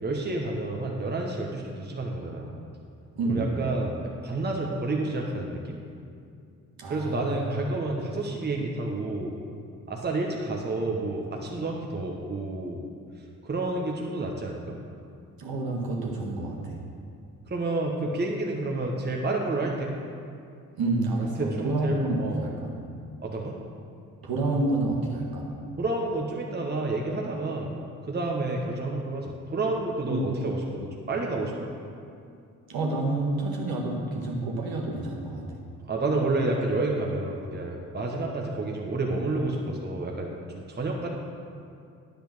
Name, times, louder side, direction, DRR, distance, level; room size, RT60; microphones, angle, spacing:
voice 1, 0.0-2.5 3.3-3.9 4.2-5.8 6.9-9.3 9.9-12.8 13.4-14.8 17.5-19.9 21.4-22.4 23.2-23.5 25.8-27.7 28.1-31.7 35.9-41.1, right 2 dB, 25° right, 0 dB, 1.2 m, -29 dB
voice 2, 3.2-3.6 6.8-7.4 15.4-16.8 20.7-22.8 24.2-25.5 30.1-30.4 32.7-35.6, right 2 dB, 55° right, -2 dB, 1.8 m, -29 dB
10.0 x 5.2 x 6.1 m, 2.4 s
hypercardioid pair, 40°, 42 cm